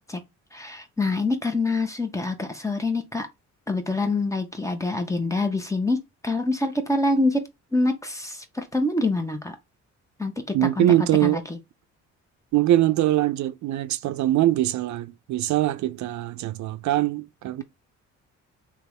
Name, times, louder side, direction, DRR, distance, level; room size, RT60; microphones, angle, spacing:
voice 1, 0.5-3.3 3.7-7.4 7.7-9.6 10.2-10.9 11.2-11.6, left 2 dB, 10° left, 0.9 m, -26 dB
voice 2, 10.5-11.4 12.5-17.6, right 14 dB, 70° right, 0.5 m, -22 dB
3.4 x 3.0 x 3.2 m
cardioid pair, 90°, 30 cm